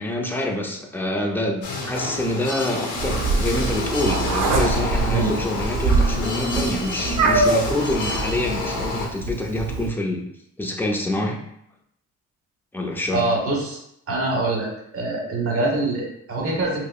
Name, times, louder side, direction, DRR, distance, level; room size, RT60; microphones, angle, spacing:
voice 1, 0.0-10.2 10.6-11.4 12.7-13.2, left 1 dB, 5° left, 1 dB, 0.5 m, -26 dB
sound 1, 1.6-9.1, left 3 dB, 85° left, 0.8 m, -29 dB
Meow, 3.0-9.9, right 3 dB, 70° right, 0.6 m, -24 dB
voice 2, 13.1-13.8 14.1-14.7 14.9-16.8, right 2 dB, 50° right, -2 dB, 1.2 m, -24 dB
4.7 x 2.1 x 2.3 m, 0.75 s
cardioid pair, 90°, 30 cm